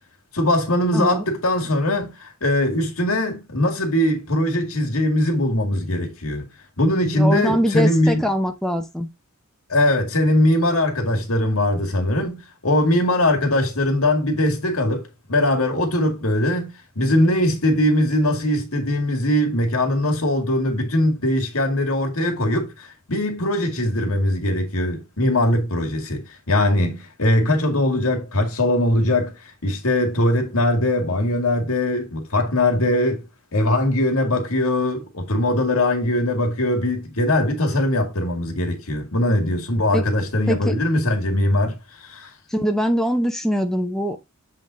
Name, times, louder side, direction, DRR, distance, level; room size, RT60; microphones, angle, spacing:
voice 1, 0.3-6.5 6.8-8.2 9.7-29.3 29.6-33.2 33.5-42.3, left 1 dB, 80° left, 2.0 m, -21 dB
voice 2, 0.9-1.2 7.1-9.1 39.9-40.0 40.5-40.8 42.5-44.2, equal, ahead, 0.7 m, -22 dB
7.7 x 3.6 x 3.9 m
head